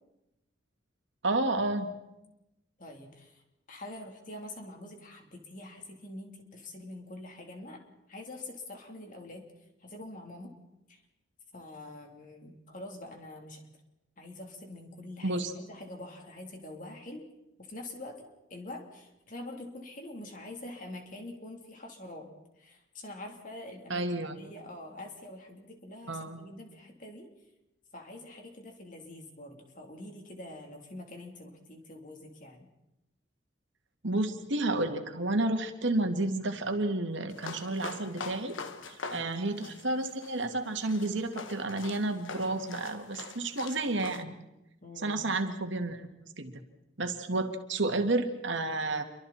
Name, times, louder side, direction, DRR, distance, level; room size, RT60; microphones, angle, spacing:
voice 1, 1.2-1.9 15.2-15.5 23.9-24.4 26.1-26.4 34.0-38.6 38.9-44.3 45.0-46.1 46.4-46.5 47.0-49.0, right 2 dB, 75° right, 6 dB, 2.2 m, -31 dB
voice 2, 2.8-3.4 3.7-7.8 8.1-9.5 9.8-10.5 10.9-11.0 11.5-13.6 14.2-17.2 17.6-22.3 22.6-27.3 27.9-32.7 39.1-39.3 44.8-45.2, left 1 dB, 40° left, 2 dB, 3.5 m, -45 dB
sound 1, 37.3-44.2, left 4 dB, 85° left, 1.4 m, -44 dB
28.5 x 24.0 x 4.4 m, 0.92 s
head